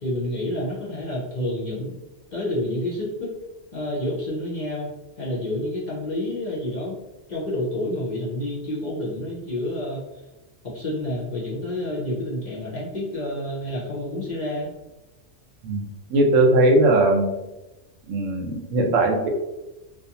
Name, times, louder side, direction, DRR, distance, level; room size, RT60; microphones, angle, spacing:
voice 1, 0.0-2.0 2.3-3.3 3.7-4.9 5.2-7.0 7.3-10.1 10.6-14.7, left 1 dB, 50° left, -6 dB, 0.6 m, -29 dB
voice 2, 15.6-17.3 18.1-19.3, right 2 dB, 85° right, 2 dB, 1.0 m, -19 dB
2.5 x 2.2 x 2.8 m, 1.0 s
omnidirectional pair, 1.3 m